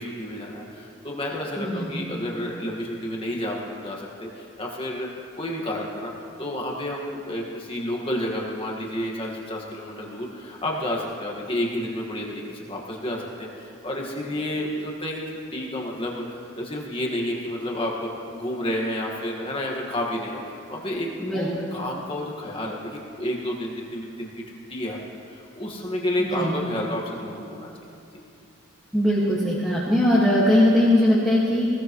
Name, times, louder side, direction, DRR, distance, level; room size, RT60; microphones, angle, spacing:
voice 1, 0.0-5.1 5.4-15.2 15.5-16.2 16.6-24.3 24.7-25.0 25.2-27.7, left 1 dB, 25° left, -2 dB, 1.7 m, -30 dB
voice 2, 1.6-2.1 21.2-21.5 26.2-26.6 28.9-31.7, left 1 dB, ahead, -8 dB, 1.7 m, -20 dB
20.5 x 17.0 x 3.1 m, 2.8 s
head